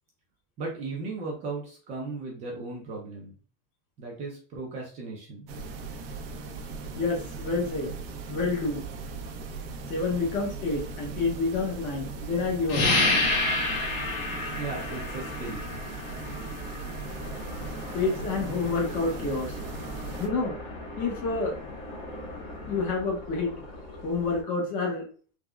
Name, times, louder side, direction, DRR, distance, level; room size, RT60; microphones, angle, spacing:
voice 1, 0.6-3.3 4.0-5.5 14.6-15.6, right 3 dB, 25° right, -2 dB, 0.4 m, -36 dB
sound 1, 5.5-20.3, right 4 dB, 85° right, 0.7 m, -39 dB
voice 2, 6.9-7.9 8.3-8.9 9.9-12.8 17.9-19.6 20.2-20.6 21.0-21.6 22.7-23.5 24.0-25.1, left 3 dB, 25° left, -1 dB, 0.6 m, -28 dB
sound 2, 12.7-23.0, left 2 dB, 75° left, 1.4 m, -32 dB
sound 3, 17.0-24.4, left 1 dB, 45° left, 1.3 m, -42 dB
3.5 x 2.0 x 2.3 m, 0.41 s
supercardioid pair, 175°, 29 cm